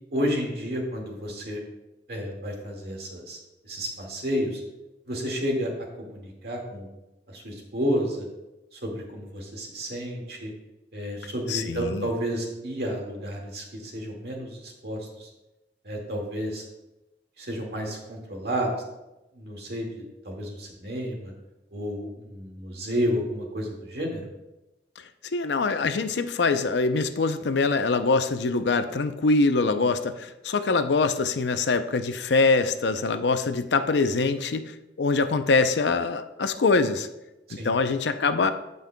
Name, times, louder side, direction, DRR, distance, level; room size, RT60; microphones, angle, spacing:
voice 1, 0.1-1.6 2.1-3.4 3.6-4.6 5.1-5.7 6.0-6.9 7.3-8.3 8.7-10.5 10.9-15.3 15.8-16.6 17.4-18.7 19.3-21.3 21.7-24.2 37.6-37.8, equal, 60° right, 0 dB, 1.9 m, -31 dB
voice 2, 11.5-12.1 25.3-37.1 37.6-38.5, left 3 dB, 80° left, 10 dB, 0.5 m, -24 dB
15.5 x 5.4 x 2.2 m, 0.97 s
head